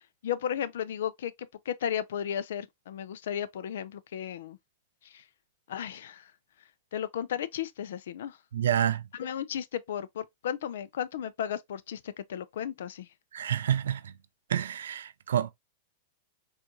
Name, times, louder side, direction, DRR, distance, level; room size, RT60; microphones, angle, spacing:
voice 1, 0.2-4.6 5.0-5.2 5.7-6.3 6.9-8.4 9.2-13.1, left 9 dB, 75° left, 0.4 m, -34 dB
voice 2, 8.5-9.0 13.3-14.1 14.5-15.5, right 10 dB, 85° right, 0.4 m, -28 dB
4.4 x 2.4 x 2.5 m
hypercardioid pair, 125°, 0 cm